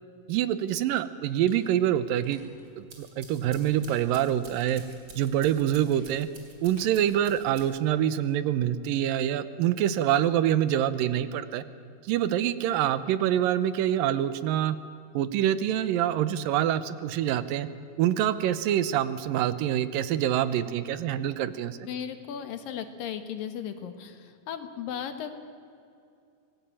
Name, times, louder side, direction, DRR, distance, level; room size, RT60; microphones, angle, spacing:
voice 1, 0.3-2.4 2.8-4.8 5.2-6.3 6.6-11.6 12.0-14.8 15.1-17.7 18.0-21.8, right 11 dB, 80° right, 14 dB, 2.5 m, -26 dB
sound 1, 1.2-2.7 3.5-4.9 5.7-7.7, left 1 dB, 25° left, 6.8 m, -58 dB
sound 2, 2.7-8.0, right 3 dB, 35° right, 3.6 m, -50 dB
voice 2, 21.8-25.3, left 8 dB, 75° left, 8 dB, 3.2 m, -36 dB
25.0 x 18.5 x 8.9 m, 2.5 s
omnidirectional pair, 4.1 m